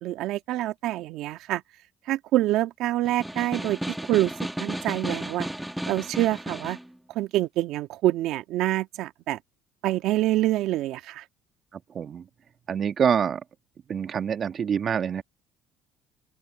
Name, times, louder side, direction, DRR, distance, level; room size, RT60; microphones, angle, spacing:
voice 1, 0.0-1.6 2.0-4.3 4.6-5.5 5.9-6.8 7.1-9.4 9.8-11.2, right 15 dB, 70° right, 1.7 m, -26 dB
Snare drum, 3.1-6.9, right 1 dB, 5° right, 2.1 m, -33 dB
voice 2, 11.7-12.3 12.7-13.4 13.9-15.2, right 7 dB, 45° right, 1.9 m, -26 dB
open air
supercardioid pair, 80°, 0 cm